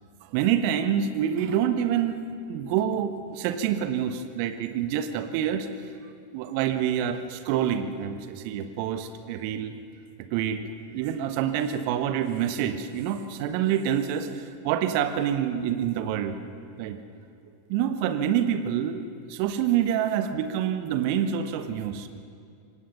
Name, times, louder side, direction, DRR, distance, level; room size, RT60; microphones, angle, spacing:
voice 1, 0.2-5.9 6.3-9.8 10.2-16.4 16.8-17.0 17.7-22.1, right 9 dB, 45° right, 9 dB, 1.3 m, -27 dB
25.0 x 18.0 x 5.8 m, 2.4 s
figure-of-eight pair, 90°, 0 cm